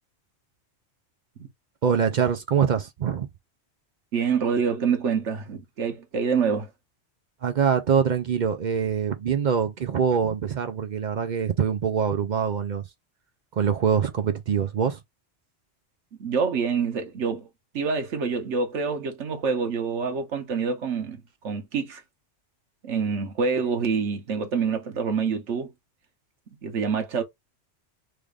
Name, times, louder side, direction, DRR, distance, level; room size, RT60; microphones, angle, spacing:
voice 1, 1.8-3.3 7.4-12.8 13.5-15.0, right 7 dB, 55° right, 0.5 m, -24 dB
voice 2, 4.1-6.7 16.2-17.5 17.7-22.0 22.8-25.7 26.6-27.2, right 5 dB, 85° right, 1.3 m, -26 dB
3.2 x 2.5 x 3.4 m
omnidirectional pair, 1.2 m